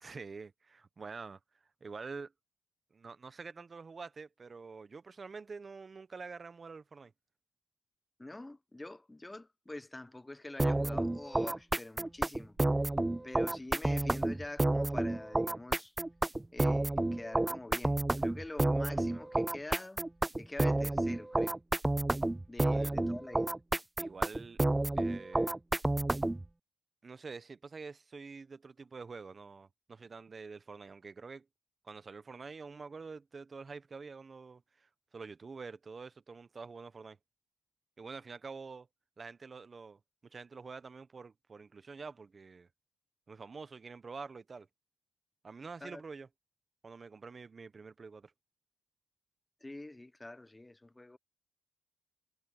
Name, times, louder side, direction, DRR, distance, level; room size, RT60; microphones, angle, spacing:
voice 1, 0.0-1.4 1.8-2.3 2.9-7.1 22.7-22.9 24.0-24.6 24.9-25.6 27.0-31.5 31.8-37.2 38.0-38.9 39.2-42.7 43.3-44.7 45.4-46.3 46.8-48.3, right 4 dB, 35° right, 1.2 m, -47 dB
voice 2, 8.2-12.6 13.2-15.9 16.5-17.9 18.2-20.0 20.4-21.6 22.5-23.5 45.8-46.0 49.6-51.2, left 2 dB, 15° left, 0.8 m, -46 dB
sound 1, 10.6-26.5, right 2 dB, 15° right, 0.3 m, -30 dB
cardioid pair, 90°, 0 cm